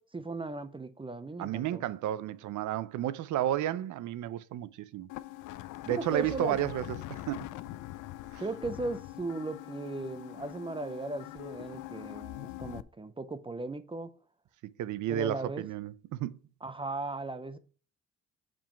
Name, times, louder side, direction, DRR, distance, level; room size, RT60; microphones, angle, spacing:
voice 1, 0.0-1.8 6.0-6.6 8.4-14.1 15.1-15.6 16.6-17.6, right 2 dB, 15° right, 0.6 m, -37 dB
voice 2, 1.4-5.1 5.9-7.5 8.3-8.4 14.8-16.4, right 12 dB, 75° right, 0.6 m, -32 dB
sound 1, 5.1-12.8, left 16 dB, 85° left, 0.5 m, -43 dB
5.6 x 5.1 x 4.5 m
cardioid pair, 90°, 30 cm